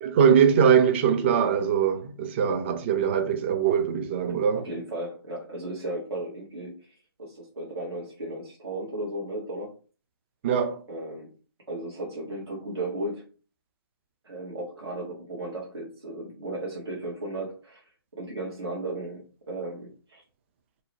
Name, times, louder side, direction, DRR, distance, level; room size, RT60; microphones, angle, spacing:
voice 1, 0.0-4.6 10.4-10.8, right 7 dB, 30° right, 0.3 m, -22 dB
voice 2, 4.5-6.9 7.2-9.8 10.9-11.3 11.7-13.3 14.2-20.2, right 1 dB, 85° right, 1.0 m, -35 dB
2.7 x 2.0 x 2.8 m
figure-of-eight pair, 140°, 13 cm